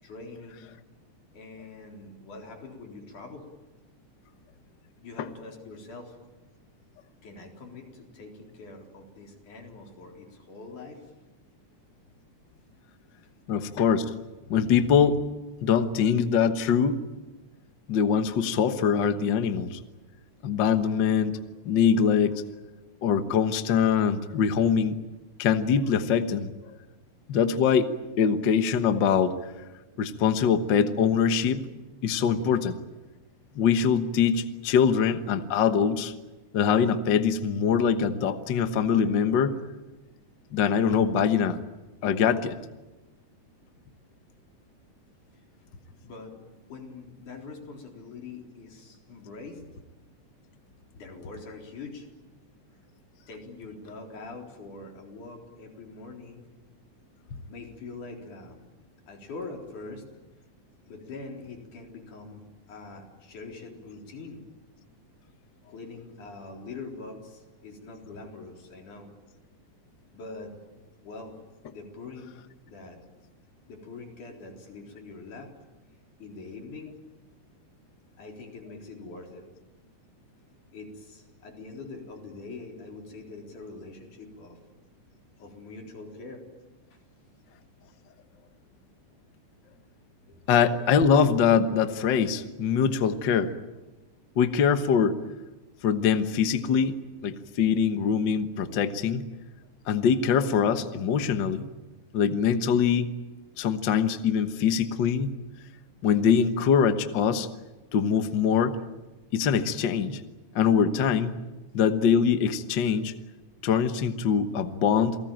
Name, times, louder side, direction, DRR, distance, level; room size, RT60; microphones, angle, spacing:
voice 1, 0.0-0.7 1.3-3.5 5.0-6.2 7.2-11.1 46.0-46.4 46.7-49.6 50.9-52.1 53.3-56.4 57.5-58.6 59.1-60.0 60.9-62.4 62.7-64.4 65.7-69.1 70.1-70.6 71.0-71.4 71.7-72.4 72.7-73.0 73.7-75.5 76.2-76.9 78.2-79.4 80.7-84.6 85.4-86.5 90.3-90.4, left 3 dB, 75° left, 1 dB, 5.4 m, -43 dB
voice 2, 13.5-14.1 14.5-15.2 15.6-17.0 17.9-19.8 20.4-21.4 21.6-22.4 23.0-25.0 25.4-26.8 27.3-27.9 28.2-29.5 30.0-31.6 32.0-32.8 33.5-36.1 36.5-39.6 40.5-41.6 42.0-42.6 90.5-93.5 94.4-95.2 95.8-97.0 97.2-99.2 99.9-101.6 102.1-103.1 103.6-105.4 106.0-107.5 107.9-108.8 109.3-110.2 110.5-111.3 111.7-113.1 113.6-115.2, left 7 dB, 55° left, 9 dB, 1.3 m, -23 dB
28.5 x 19.0 x 9.1 m, 1.1 s
omnidirectional pair, 3.6 m